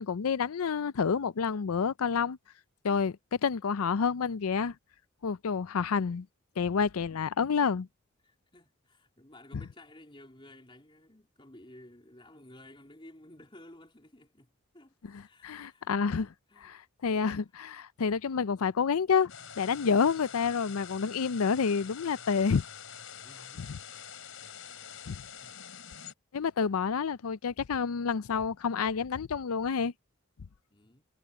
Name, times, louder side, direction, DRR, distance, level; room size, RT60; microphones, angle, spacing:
voice 1, 0.0-2.4 2.8-3.2 3.4-4.7 5.2-6.3 6.6-7.9 15.4-16.3 17.0-22.6 25.1-25.2 26.3-29.9, left 6 dB, 85° left, 0.5 m, -28 dB
voice 2, 8.2-14.9 15.2-16.8 19.9-20.2 23.2-23.8 24.6-25.6 30.7-31.0, left 1 dB, 25° left, 3.3 m, -55 dB
sound 1, 19.3-26.1, left 8 dB, 65° left, 4.7 m, -46 dB
head